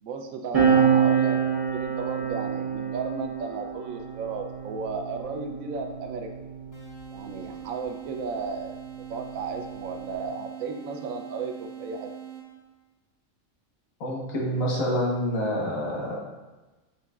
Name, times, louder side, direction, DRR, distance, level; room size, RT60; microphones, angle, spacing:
voice 1, 0.0-6.3 7.1-8.8 9.1-12.1, right 4 dB, 85° right, 4 dB, 1.0 m, -34 dB
sound 1, 0.5-7.5 8.4-10.3, right 7 dB, 30° right, 1.1 m, -27 dB
sound 2, 6.7-12.7, right 10 dB, 15° left, 0.7 m, -42 dB
voice 2, 14.0-16.2, equal, 85° left, -3 dB, 1.5 m, -27 dB
7.5 x 2.8 x 2.3 m, 1.1 s
omnidirectional pair, 1.4 m